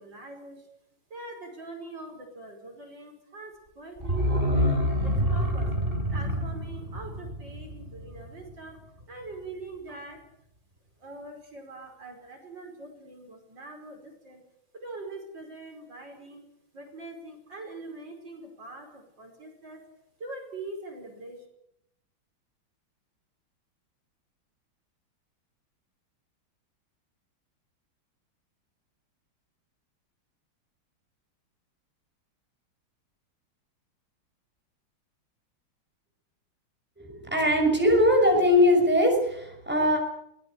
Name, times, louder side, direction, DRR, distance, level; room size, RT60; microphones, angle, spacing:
voice 1, 0.1-0.5 1.1-2.5 2.8-3.5 3.8-3.9 4.3-4.7 5.3-5.6 6.1-8.7 9.1-10.2 11.0-12.1 12.6-13.3 13.6-13.9 14.8-16.4 16.8-18.8 19.6-19.8 20.2-21.3, right 2 dB, 60° right, 3 dB, 6.1 m, -42 dB
sound 1, 4.0-8.7 9.0-9.1, equal, 25° right, 5.6 m, -27 dB
voice 2, 37.0-40.0, left 1 dB, 5° right, 2 dB, 6.2 m, -21 dB
24.0 x 18.5 x 8.5 m, 0.79 s
omnidirectional pair, 2.2 m